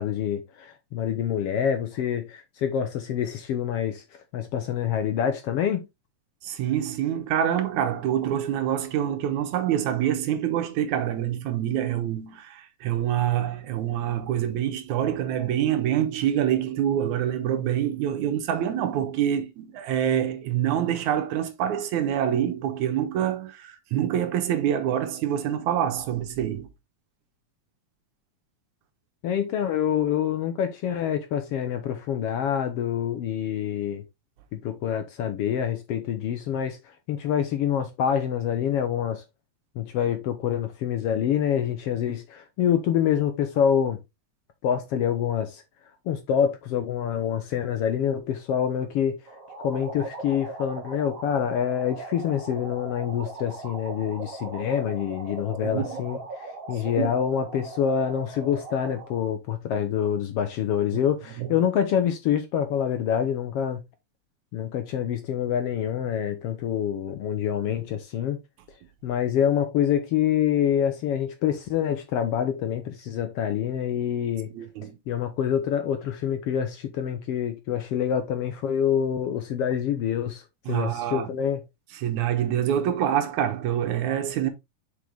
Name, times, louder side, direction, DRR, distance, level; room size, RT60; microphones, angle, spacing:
voice 1, 0.0-5.9 29.2-34.0 34.5-36.8 37.1-39.2 39.7-44.0 44.6-45.6 46.0-49.2 49.6-63.8 64.5-68.4 69.0-74.5 75.1-81.6, left 9 dB, 70° left, 1.5 m, -26 dB
voice 2, 6.4-26.7 55.6-55.9 57.0-57.1 61.4-61.5 74.5-75.0 80.7-81.4 81.9-84.5, right 10 dB, 85° right, 2.4 m, -26 dB
sound 1, 49.3-59.2, right 3 dB, 35° right, 1.7 m, -39 dB
6.5 x 5.0 x 3.4 m
omnidirectional pair, 3.3 m